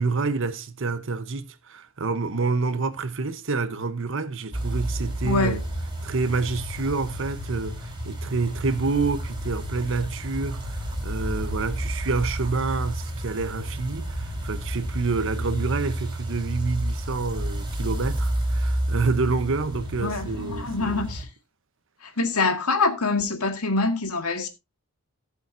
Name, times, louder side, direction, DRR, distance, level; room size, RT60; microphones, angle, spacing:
voice 1, 0.0-5.6 6.0-21.1, right 4 dB, 60° right, 0.9 m, -28 dB
sound 1, 4.5-21.2, right 1 dB, 20° right, 4.3 m, -30 dB
voice 2, 5.2-5.6 20.0-21.3 22.0-24.5, left 3 dB, 80° left, 1.8 m, -25 dB
18.0 x 7.1 x 2.6 m
head